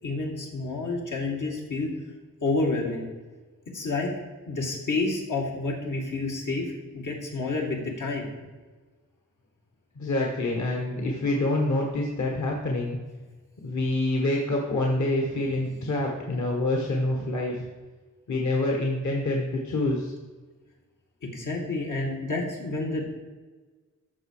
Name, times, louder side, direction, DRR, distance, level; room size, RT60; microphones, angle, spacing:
voice 1, 0.0-1.9 2.4-3.0 3.7-4.1 4.5-8.3 13.7-13.8 15.6-15.7 21.2-23.0, left 3 dB, 90° left, -1 dB, 2.4 m, -29 dB
voice 2, 9.9-13.0 13.6-17.6 18.3-20.1, left 2 dB, 70° left, 0 dB, 1.5 m, -26 dB
14.0 x 6.3 x 4.8 m, 1.3 s
wide cardioid pair, 140°, 30 cm